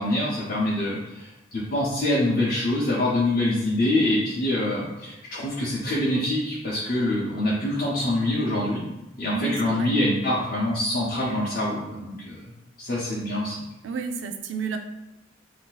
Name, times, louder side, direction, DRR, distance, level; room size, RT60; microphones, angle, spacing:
voice 1, 0.0-8.8 9.2-12.4 12.8-13.6, left 1 dB, 50° left, -7 dB, 0.6 m, -25 dB
voice 2, 9.3-9.9 13.8-14.8, right 5 dB, 80° right, 6 dB, 0.4 m, -31 dB
2.6 x 2.4 x 3.8 m, 0.94 s
head